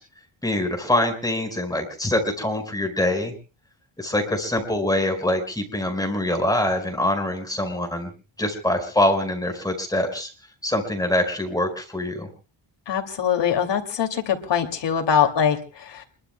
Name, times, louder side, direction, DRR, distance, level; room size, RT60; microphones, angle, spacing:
voice 1, 0.4-3.3 4.0-8.1 8.4-10.3 10.6-12.3, left 1 dB, 10° left, 4 dB, 4.7 m, -24 dB
voice 2, 12.9-16.0, left 8 dB, 60° left, 4 dB, 2.5 m, -23 dB
29.0 x 22.5 x 2.2 m, 0.35 s
cardioid pair, 125°, 48 cm